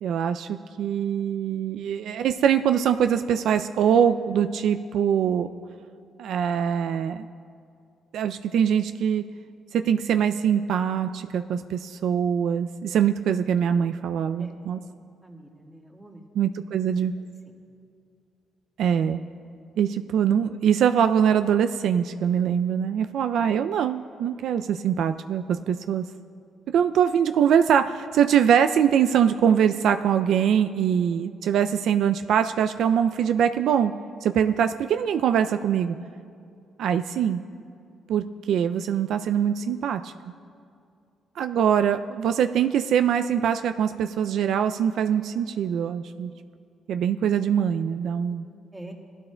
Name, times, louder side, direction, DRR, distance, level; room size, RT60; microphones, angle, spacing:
voice 1, 0.0-5.5 6.2-7.3 8.1-9.2 9.7-14.8 16.4-17.1 18.8-19.2 19.8-26.1 26.7-33.9 34.2-36.0 36.8-37.4 38.1-40.1 41.4-46.3 46.9-48.5, right 8 dB, 75° right, 9 dB, 0.3 m, -23 dB
voice 2, 14.4-14.9 15.2-16.2 17.4-17.5 48.7-48.9, right 1 dB, 10° right, 0 dB, 1.5 m, -45 dB
18.0 x 12.5 x 2.2 m, 2.4 s
cardioid pair, 90°, 0 cm